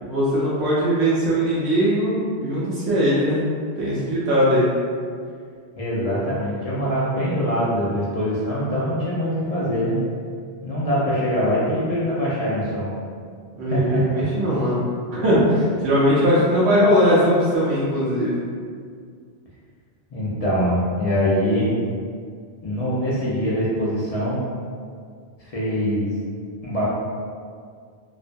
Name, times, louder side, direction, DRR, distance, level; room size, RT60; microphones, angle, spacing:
voice 1, 0.0-3.4 3.8-4.7 13.5-14.8 15.1-18.4, equal, 85° right, -8 dB, 0.9 m, -20 dB
voice 2, 5.8-10.0 10.6-12.9 13.7-14.2 20.1-21.7 22.6-24.4 25.4-26.1 26.6-26.8, equal, 50° left, -8 dB, 0.5 m, -23 dB
2.5 x 2.1 x 2.5 m, 2.1 s
omnidirectional pair, 1.1 m